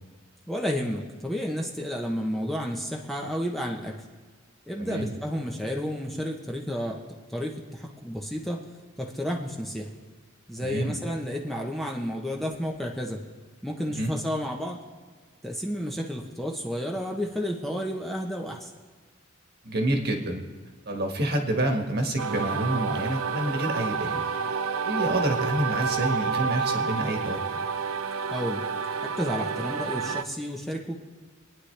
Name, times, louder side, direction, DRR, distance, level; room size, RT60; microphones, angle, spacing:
voice 1, 0.5-4.0 4.7-7.0 7.3-8.6 9.0-9.9 10.5-13.2 13.6-14.8 15.4-18.7 28.3-28.7 29.0-31.0, equal, ahead, 0 dB, 0.9 m, -31 dB
voice 2, 4.8-5.1 10.6-11.0 13.9-14.1 19.6-20.4 20.8-24.2 24.8-27.4, right 1 dB, 50° right, 3 dB, 1.6 m, -28 dB
sound 1, 22.2-30.2, right 5 dB, 80° right, 0.6 m, -29 dB
25.5 x 9.8 x 3.3 m, 1.4 s
head